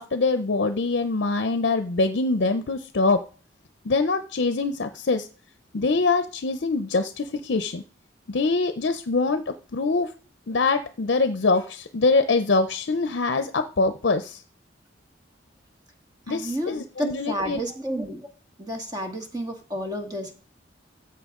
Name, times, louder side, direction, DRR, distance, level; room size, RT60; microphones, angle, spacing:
voice 1, 0.0-3.2 3.8-5.3 5.7-7.8 8.3-10.1 10.5-14.4 16.3-17.6, left 3 dB, 65° left, 9 dB, 0.6 m, -24 dB
voice 2, 16.3-18.2 18.6-20.3, equal, 20° right, 3 dB, 1.7 m, -31 dB
13.5 x 7.7 x 3.7 m, 0.39 s
head